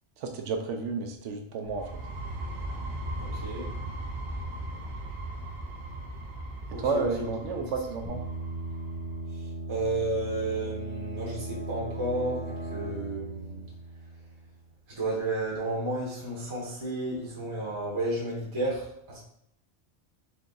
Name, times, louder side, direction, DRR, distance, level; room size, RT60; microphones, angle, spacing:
voice 1, 0.2-1.8 6.8-8.2, right 4 dB, 85° right, 4 dB, 0.9 m, -31 dB
sound 1, 1.6-9.3, right 1 dB, 60° right, 1.0 m, -38 dB
voice 2, 3.2-3.7 6.7-7.6 9.3-13.7 14.9-19.2, right 2 dB, 25° right, -4 dB, 0.9 m, -32 dB
sound 2, 8.0-14.6, right 2 dB, 25° left, 0.6 m, -37 dB
3.5 x 2.7 x 3.8 m, 0.73 s
omnidirectional pair, 1.2 m